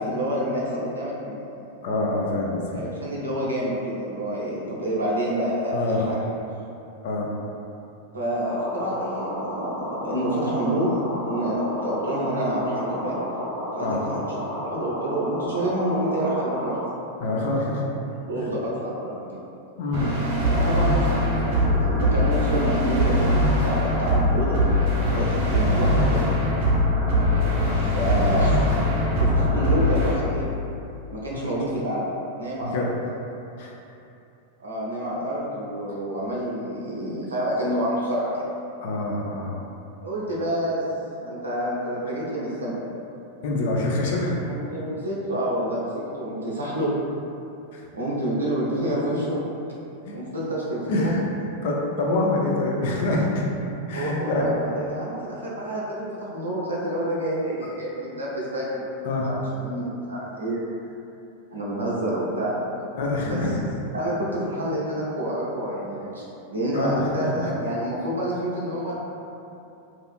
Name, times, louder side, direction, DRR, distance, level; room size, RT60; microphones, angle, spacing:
voice 1, 0.0-1.7 2.7-6.2 8.1-11.0 11.2-13.2 13.7-14.3 14.6-16.8 17.7-17.8 18.2-19.2 20.5-24.6 25.1-26.2 27.8-28.6 29.2-30.4 31.1-32.0 32.4-32.9 34.6-38.3 40.0-40.8 41.2-42.8 44.4-46.9 47.9-49.4 50.1-51.2 53.9-60.6 61.5-62.6 63.3-63.4 63.9-66.2 66.5-68.9, right 1 dB, 75° right, -6 dB, 0.5 m, -28 dB
voice 2, 1.8-2.6 5.7-6.0 7.0-7.3 13.8-14.1 17.2-17.8 18.4-18.5 19.8-20.1 27.3-27.5 31.3-31.4 32.7-32.9 33.6-33.7 38.8-39.6 43.4-44.4 47.7-47.8 48.6-48.7 50.0-50.2 50.9-51.2 51.6-53.5 53.9-54.5 59.0-59.3 63.0-63.5 66.7-67.5, left 2 dB, 55° left, -2 dB, 0.4 m, -25 dB
sound 1, 8.4-16.9, equal, 10° left, 0.7 m, -32 dB
sound 2, 19.9-30.1, left 1 dB, 55° right, 0.9 m, -21 dB
2.7 x 2.4 x 2.4 m, 2.7 s
figure-of-eight pair, 90°, 0 cm